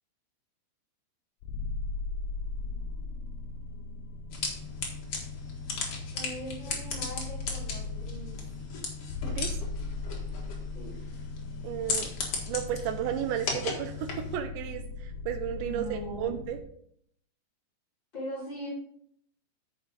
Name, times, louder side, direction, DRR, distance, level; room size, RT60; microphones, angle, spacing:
sound 1, 1.4-16.6, left 3 dB, 75° left, 2.3 m, -38 dB
sound 2, 4.3-14.4, left 4 dB, 60° left, 1.6 m, -37 dB
voice 1, 6.1-8.4 10.7-10.9 15.6-16.3 18.1-18.7, right 1 dB, 25° left, -6 dB, 3.3 m, -40 dB
voice 2, 9.2-9.6 11.6-12.1 12.5-16.6, right 10 dB, 80° right, 8 dB, 2.8 m, -33 dB
9.4 x 6.3 x 3.9 m, 0.67 s
omnidirectional pair, 5.2 m